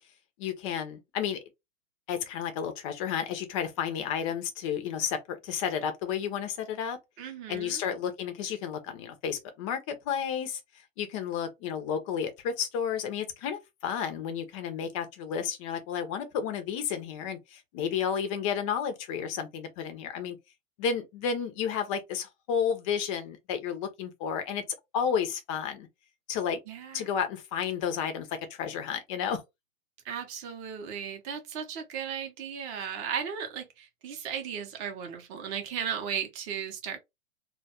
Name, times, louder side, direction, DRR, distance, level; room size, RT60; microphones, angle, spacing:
voice 1, 0.4-1.4 2.1-7.0 7.5-10.6 11.0-20.4 20.8-24.6 24.9-25.9 26.3-26.6 26.9-29.4, left 7 dB, 25° left, 0.4 m, -32 dB
voice 2, 7.2-7.8 26.7-27.1 30.0-37.0, right 7 dB, 30° right, 0.6 m, -36 dB
2.2 x 2.1 x 2.8 m
hypercardioid pair, 130°, 40 cm